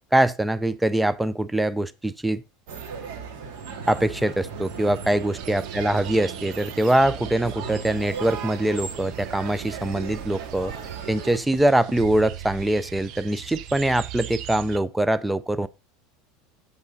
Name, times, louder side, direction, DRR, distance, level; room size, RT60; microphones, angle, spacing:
voice 1, 0.1-2.4 3.9-10.7 11.1-15.7, right 1 dB, 5° right, 0.4 m, -23 dB
sound 1, 2.7-11.4, right 6 dB, 65° right, 2.4 m, -36 dB
sound 2, 5.4-14.8, right 12 dB, 45° right, 0.7 m, -39 dB
8.3 x 7.4 x 3.9 m
supercardioid pair, 155°, 0 cm